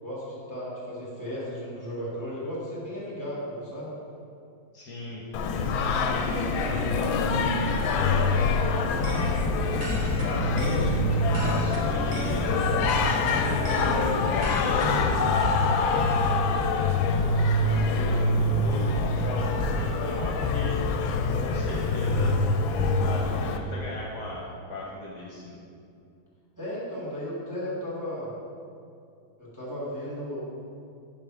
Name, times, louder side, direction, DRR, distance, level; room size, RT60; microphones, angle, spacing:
voice 1, 0.0-3.9 10.5-10.9 26.6-28.3 29.4-30.4, equal, 10° right, -7 dB, 1.3 m, -35 dB
voice 2, 4.7-5.2 5.5-9.0 9.8-12.5 13.2-16.0 16.7-20.7 21.4-22.3 22.9-25.5, left 2 dB, 60° left, -3 dB, 1.3 m, -38 dB
Singing, 5.3-23.6, left 3 dB, 80° left, 1.3 m, -25 dB
sound 1, 8.7-15.2, right 1 dB, 60° right, 0.7 m, -37 dB
sound 2, 8.9-21.8 22.1-22.5 22.7-23.1 23.4-23.5, left 1 dB, 35° left, 1.9 m, -33 dB
5.4 x 4.9 x 5.9 m, 2.4 s
omnidirectional pair, 2.2 m